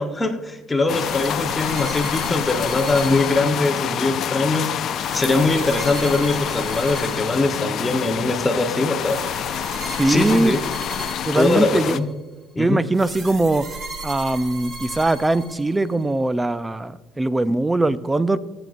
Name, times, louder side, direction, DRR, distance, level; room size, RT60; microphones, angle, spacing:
voice 1, 0.0-4.7 5.1-9.2 10.1-10.6 11.3-12.1 12.5-12.8, left 2 dB, 15° left, 5 dB, 1.0 m, -22 dB
sound 1, 0.9-12.0, left 10 dB, 55° left, 0.4 m, -27 dB
sound 2, 0.9-4.1 4.9-8.0 9.0-12.1 12.9-16.0, right 2 dB, 40° right, 1.5 m, -36 dB
voice 2, 10.0-10.6 11.3-12.0 12.6-13.7 14.0-18.4, right 2 dB, 15° right, 16 dB, 0.4 m, -21 dB
19.0 x 7.8 x 2.5 m, 1.2 s
supercardioid pair, 100°, 0 cm